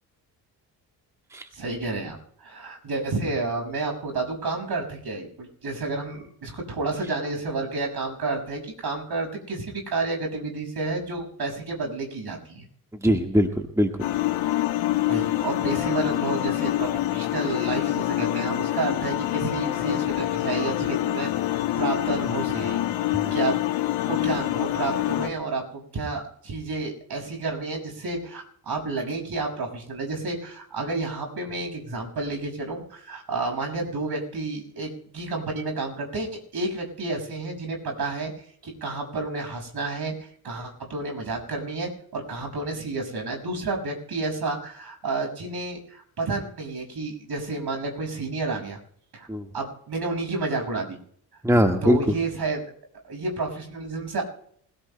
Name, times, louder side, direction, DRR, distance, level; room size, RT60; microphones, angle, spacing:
voice 1, 1.5-12.7 15.1-21.3 21.8-22.8 23.3-23.6 24.1-38.3 38.6-48.8 49.1-49.3 49.5-51.0 51.8-52.6 53.0-54.2, right 3 dB, 50° right, 2 dB, 6.2 m, -30 dB
voice 2, 13.0-13.9 23.2-23.3 49.3-49.5 51.4-52.1, equal, 5° right, 4 dB, 1.6 m, -21 dB
sound 1, 14.0-25.3, left 14 dB, 70° left, 1.6 m, -26 dB
28.0 x 17.0 x 2.3 m, 0.63 s
hypercardioid pair, 50°, 49 cm